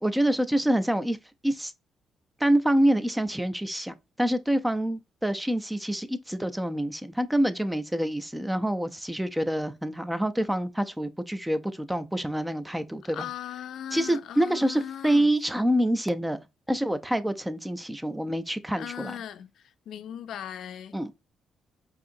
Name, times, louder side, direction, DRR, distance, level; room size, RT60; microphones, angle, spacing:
voice 1, 0.0-1.2 1.4-1.7 2.4-13.3 13.9-19.2 20.9-21.1, right 1 dB, 5° right, 0.5 m, -26 dB
voice 2, 13.1-15.3 18.8-19.5 19.9-21.2, left 10 dB, 70° left, 0.5 m, -38 dB
4.8 x 2.8 x 2.6 m
cardioid pair, 90°, 0 cm